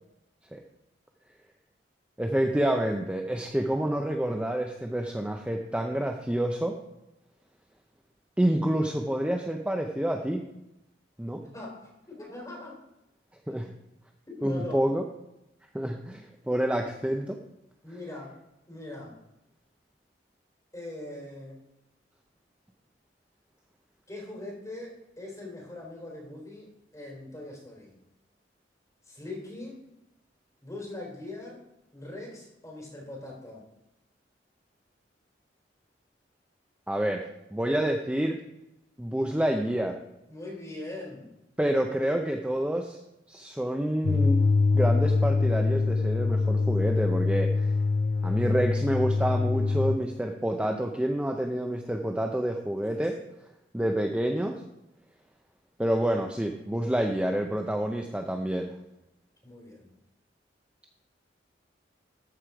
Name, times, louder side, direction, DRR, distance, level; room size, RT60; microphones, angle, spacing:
voice 1, 2.2-6.8 8.4-10.4 11.2-11.4 13.5-13.7 14.4-15.0 15.7-17.4 36.9-37.3 37.5-38.4 39.0-40.0 41.6-43.0 43.3-44.4 44.7-47.7 48.2-53.2 53.7-54.6 55.8-58.7, right 1 dB, 5° right, 3 dB, 0.6 m, -28 dB
voice 2, 11.4-12.8 13.5-13.7 14.3-14.9 17.8-18.4 18.7-19.2 20.7-21.6 24.1-27.9 29.0-29.9 30.6-31.7 31.9-33.7 40.3-41.3 53.0-53.2 59.4-59.9, left 2 dB, 20° left, -3 dB, 3.5 m, -41 dB
sound 1, 44.0-50.0, left 4 dB, 50° left, 0.4 m, -24 dB
13.5 x 4.9 x 4.9 m, 0.89 s
head